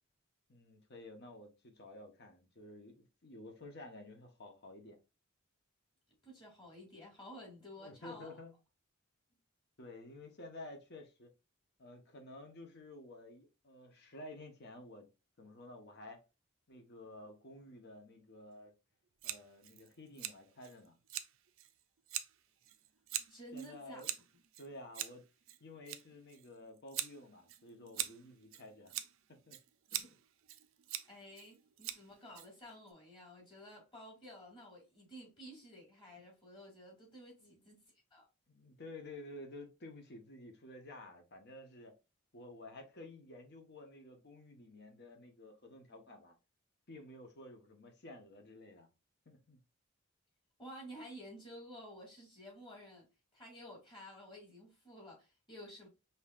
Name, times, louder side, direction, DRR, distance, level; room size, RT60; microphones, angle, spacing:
voice 1, 0.5-5.0 7.8-8.5 9.8-11.3 11.8-15.1 15.4-16.2 16.7-18.7 19.2-21.0 23.5-24.1 24.6-25.2 25.6-28.9 29.3-29.6 29.9-30.1 37.4-37.7 38.5-41.9 42.3-46.3 46.9-48.9 49.3-49.6, left 2 dB, 55° left, 1.0 m, -52 dB
voice 2, 6.2-8.4 23.3-24.0 31.0-37.8 38.1-38.2 50.6-53.1 53.3-55.9, equal, 25° left, 2.1 m, -52 dB
Scissors, 19.2-32.9, right 12 dB, 75° right, 0.5 m, -45 dB
5.6 x 2.8 x 2.4 m
head